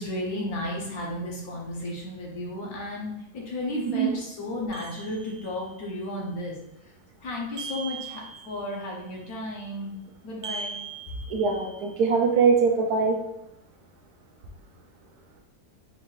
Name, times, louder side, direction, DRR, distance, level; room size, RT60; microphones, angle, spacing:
voice 1, 0.0-6.6 6.8-6.9 7.2-10.0 10.2-10.8, left 1 dB, 65° left, -2 dB, 1.2 m, -33 dB
sound 1, 4.7-5.7 7.6-8.8 10.4-11.9, right 5 dB, 90° right, 0.5 m, -39 dB
voice 2, 11.3-13.2, right 5 dB, 70° right, 2 dB, 1.0 m, -22 dB
4.6 x 2.5 x 3.0 m, 0.84 s
omnidirectional pair, 1.8 m